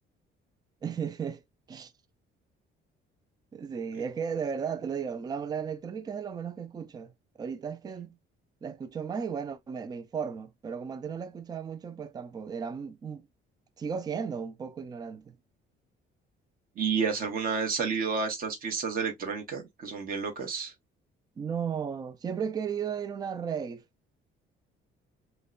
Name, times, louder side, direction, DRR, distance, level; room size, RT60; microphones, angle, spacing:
voice 1, 0.8-1.4 1.7-1.9 3.5-7.1 7.4-8.2 8.6-13.3 13.8-15.4 21.4-23.8, right 7 dB, 20° right, 0.3 m, -35 dB
voice 2, 16.8-20.7, right 5 dB, 45° right, 1.1 m, -30 dB
5.3 x 2.2 x 2.4 m
cardioid pair, 170°, 21 cm